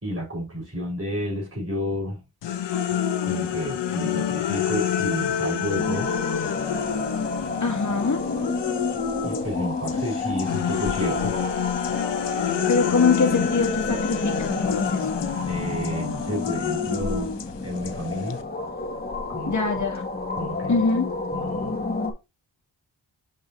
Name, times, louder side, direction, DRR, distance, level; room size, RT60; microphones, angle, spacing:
voice 1, 0.0-2.2 3.2-6.1 9.2-11.4 15.5-17.4 17.6-18.4 19.3-19.5 20.3-20.8 21.3-21.9, equal, 35° right, 4.4 m, -31 dB
sound 1, 2.4-9.5 9.8-18.4, left 9 dB, 80° left, 0.8 m, -28 dB
sound 2, 5.8-22.1, left 3 dB, 20° left, 1.8 m, -30 dB
voice 2, 7.6-8.2 12.7-15.1 19.5-20.0 20.7-21.1, left 4 dB, 40° left, 1.9 m, -23 dB
6.7 x 5.5 x 2.7 m
cardioid pair, 70°, 43 cm